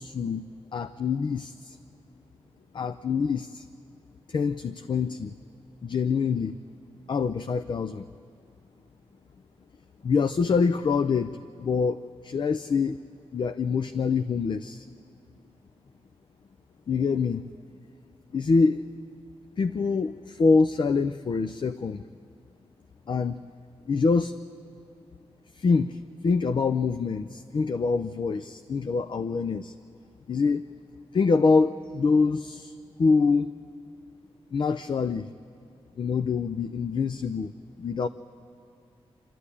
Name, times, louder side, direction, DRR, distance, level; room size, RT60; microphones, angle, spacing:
voice 1, 0.0-1.8 2.7-3.7 4.3-5.3 5.8-6.6 7.1-8.0 10.0-11.3 11.6-13.0 13.3-14.9 16.9-17.4 18.3-18.8 19.6-22.0 23.1-23.4 23.9-24.3 25.5-29.7 30.3-30.6 31.1-32.7 33.0-33.5 34.5-35.3 36.0-37.5 37.8-38.1, left 4 dB, 50° left, 10 dB, 0.5 m, -25 dB
26.0 x 13.5 x 9.9 m, 2.5 s
wide cardioid pair, 110°, 11 cm